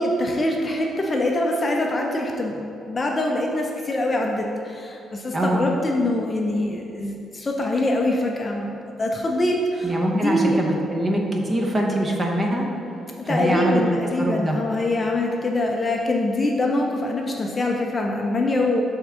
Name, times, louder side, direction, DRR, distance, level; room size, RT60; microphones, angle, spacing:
voice 1, 0.0-10.6 13.3-18.8, left 1 dB, 25° left, 0 dB, 0.5 m, -24 dB
voice 2, 5.3-5.6 9.8-12.7 13.2-13.8 14.2-14.6, right 1 dB, 20° right, 0 dB, 0.9 m, -23 dB
7.8 x 3.6 x 6.1 m, 2.7 s
cardioid pair, 160°, 0 cm